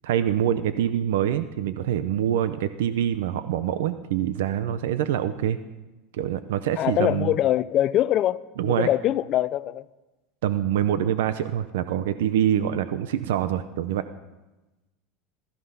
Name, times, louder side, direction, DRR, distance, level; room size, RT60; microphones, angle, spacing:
voice 1, 0.0-5.6 6.1-7.3 8.6-8.9 10.4-14.0, right 10 dB, 85° right, 0.7 m, -25 dB
voice 2, 6.8-9.8, left 12 dB, 40° left, 0.5 m, -23 dB
19.0 x 13.5 x 5.6 m
supercardioid pair, 145°, 0 cm